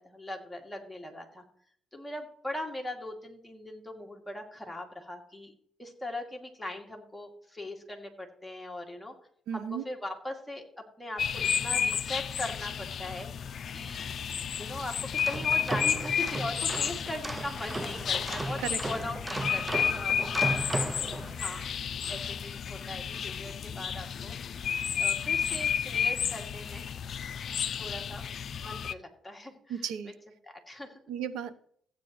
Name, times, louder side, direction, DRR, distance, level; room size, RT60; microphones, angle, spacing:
voice 1, 0.0-1.4 1.9-5.5 5.8-9.1 9.5-14.0 14.6-20.5 20.9-21.8 22.1-24.4 25.0-26.8 27.8-28.2 28.6-29.8 30.4-31.0, left 1 dB, 5° left, 1 dB, 2.4 m, -40 dB
voice 2, 9.5-9.8 18.6-18.8 29.7-30.1 31.1-31.6, right 8 dB, 85° right, 12 dB, 0.8 m, -34 dB
sound 1, 11.2-28.9, left 8 dB, 55° left, 0.4 m, -32 dB
sound 2, 15.0-21.7, right 2 dB, 20° right, 0.5 m, -36 dB
15.5 x 9.2 x 3.1 m, 0.64 s
cardioid pair, 90°, 0 cm